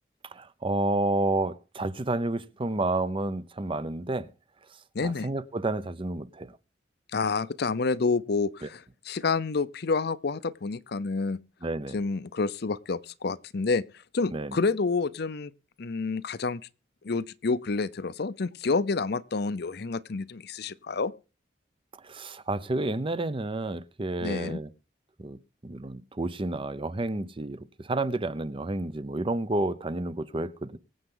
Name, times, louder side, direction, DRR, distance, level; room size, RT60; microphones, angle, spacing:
voice 1, 0.3-4.3 5.0-6.5 11.6-12.0 14.3-14.6 22.0-24.7 25.2-30.8, right 2 dB, 30° right, 0.7 m, -30 dB
voice 2, 4.9-5.3 7.1-11.4 11.9-13.8 14.1-15.5 15.8-16.6 17.0-21.1 24.2-24.6, left 4 dB, 65° left, 0.6 m, -28 dB
23.5 x 7.9 x 3.8 m
head